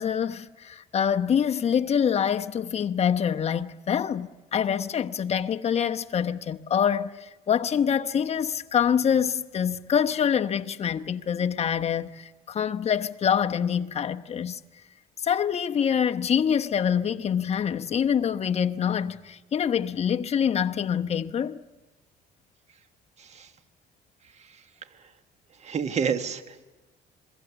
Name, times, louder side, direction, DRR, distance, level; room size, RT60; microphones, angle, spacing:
voice 1, 0.0-14.6 15.2-21.6, left 8 dB, 40° left, 0.9 m, -25 dB
voice 2, 25.6-26.6, right 6 dB, 40° right, 1.5 m, -29 dB
27.5 x 22.0 x 7.1 m
cardioid pair, 110°, 17 cm